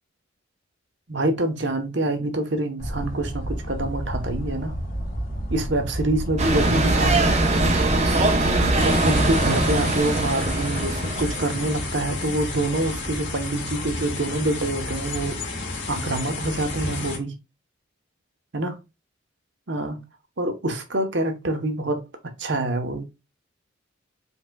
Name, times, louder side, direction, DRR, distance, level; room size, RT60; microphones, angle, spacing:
voice 1, 1.1-4.7 5.5-7.5 8.4-15.4 15.9-17.4 18.5-18.7 19.7-20.0 20.4-22.0 22.4-23.0, right 2 dB, 60° right, 1.0 m, -26 dB
sound 1, 2.8-9.8, equal, 45° left, 1.7 m, -30 dB
sound 2, 6.4-11.8, right 2 dB, 35° right, 0.8 m, -22 dB
sound 3, 8.8-17.2, left 2 dB, 70° left, 1.6 m, -31 dB
5.3 x 4.0 x 2.3 m
head